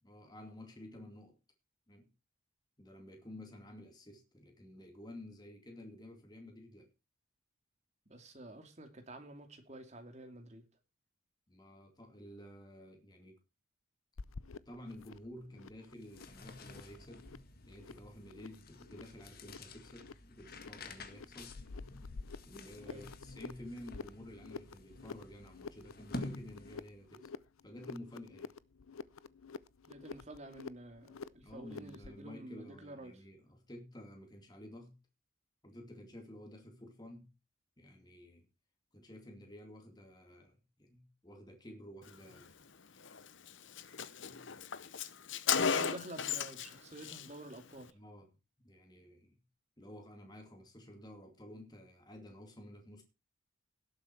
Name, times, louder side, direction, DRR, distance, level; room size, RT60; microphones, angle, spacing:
voice 1, 0.0-1.4 1.9-2.1 2.8-6.9 11.5-13.4 14.7-17.3 17.7-21.6 22.4-27.3 27.6-28.5 31.4-35.0 35.6-37.3 37.8-38.5 38.9-42.5 44.3-44.5 47.9-48.3 48.6-49.4 49.8-53.0, left 1 dB, 20° left, 2.5 m, -52 dB
voice 2, 8.1-10.6 22.9-23.0 29.9-33.2 45.7-47.9, right 1 dB, 35° right, 2.6 m, -49 dB
sound 1, 14.2-32.2, left 4 dB, 90° left, 0.7 m, -50 dB
sound 2, 15.9-27.1, left 2 dB, 45° left, 1.8 m, -50 dB
Car, 43.1-43.2 43.5-43.6 43.8-46.7 47.0-47.3, left 7 dB, 65° left, 0.9 m, -34 dB
17.5 x 8.1 x 4.5 m
head